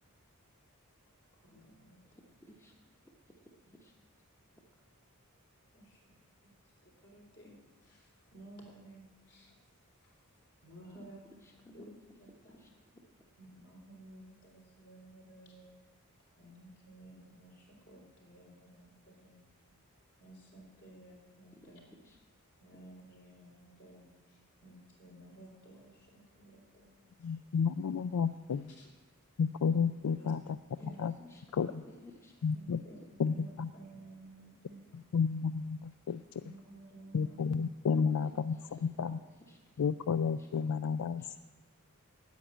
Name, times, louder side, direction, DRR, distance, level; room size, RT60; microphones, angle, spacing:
voice 1, 1.4-2.2 5.7-6.0 6.4-9.5 10.0-11.4 11.7-11.9 12.2-12.5 13.4-15.7 16.4-19.4 20.2-21.8 22.6-27.6 28.7-28.9 30.2-30.3 30.8-31.0 32.4-35.4 36.4-37.4 38.0-38.1, right 1 dB, 50° left, -1 dB, 3.5 m, -55 dB
voice 2, 2.4-2.9 3.8-3.9 10.9-11.0 11.4-11.8 12.5-12.7 22.0-22.2 30.8-30.9 31.2-32.3 32.7-32.8 38.2-38.3 39.5-39.6 40.4-40.5 41.2-41.3, left 1 dB, 10° left, 0 dB, 1.1 m, -55 dB
voice 3, 27.2-28.7 29.4-30.4 31.0-31.1 31.5-31.7 32.4-32.8 33.2-33.7 35.1-36.2 37.1-39.2 39.8-41.4, left 6 dB, 85° left, 12 dB, 0.4 m, -31 dB
9.3 x 8.7 x 9.1 m, 1.3 s
head